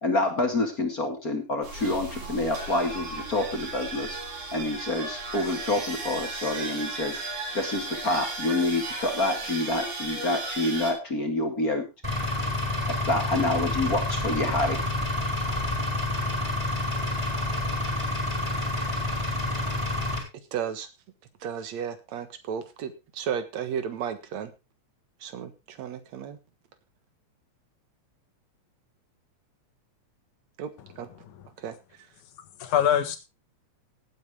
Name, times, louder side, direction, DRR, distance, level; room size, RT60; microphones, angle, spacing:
voice 1, 0.0-4.2 4.5-7.2 7.5-11.8 12.9-14.8 15.3-15.4, left 2 dB, 35° left, 4 dB, 2.0 m, -27 dB
sound 1, 1.6-10.9, right 3 dB, 85° right, 5.2 m, -35 dB
Engine, 12.0-20.2, left 2 dB, 10° right, 4.8 m, -28 dB
voice 2, 20.5-20.9 21.4-24.5 25.2-26.4 30.6-30.7 31.0-31.1 31.6-31.7, right 8 dB, 70° right, 11 dB, 2.6 m, -33 dB
voice 3, 30.8-31.5 32.6-33.2, left 9 dB, 90° left, 9 dB, 3.0 m, -26 dB
18.0 x 8.5 x 3.4 m, 0.27 s
omnidirectional pair, 3.4 m